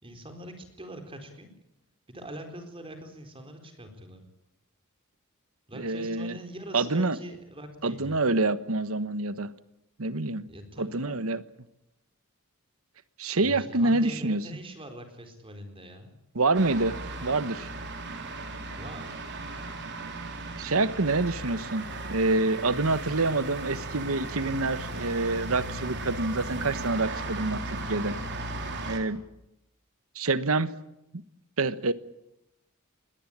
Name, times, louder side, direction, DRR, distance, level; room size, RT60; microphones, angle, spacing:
voice 1, 0.0-1.5 2.1-4.2 5.7-8.2 10.5-11.3 13.4-16.2 18.7-19.2, right 1 dB, 25° right, 6 dB, 4.2 m, -43 dB
voice 2, 5.7-6.4 6.7-7.2 7.8-9.5 10.0-10.5 10.8-11.4 13.2-14.4 16.3-17.7 20.6-28.1 28.9-29.2 30.1-30.7 31.1-31.2 31.6-31.9, right 3 dB, 70° right, 14 dB, 1.2 m, -27 dB
Tractor mowing the fields, 16.5-29.0, right 2 dB, 55° right, 3.9 m, -36 dB
21.5 x 18.0 x 10.0 m, 0.86 s
head